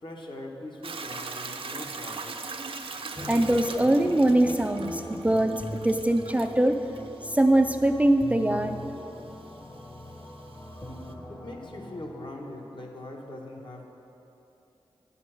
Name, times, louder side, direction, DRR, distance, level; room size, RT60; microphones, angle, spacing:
voice 1, 0.0-2.4 11.3-13.8, left 1 dB, 55° left, 0 dB, 1.2 m, -41 dB
Hiss / Toilet flush / Trickle dribble, 0.8-11.1, right 4 dB, 65° right, 0.6 m, -41 dB
sound 1, 3.2-12.3, left 1 dB, 25° left, 0.9 m, -40 dB
voice 2, 3.3-6.8 7.2-8.8, right 1 dB, 15° right, 6 dB, 0.4 m, -22 dB
9.7 x 5.4 x 6.4 m, 2.9 s
wide cardioid pair, 75°, 10 cm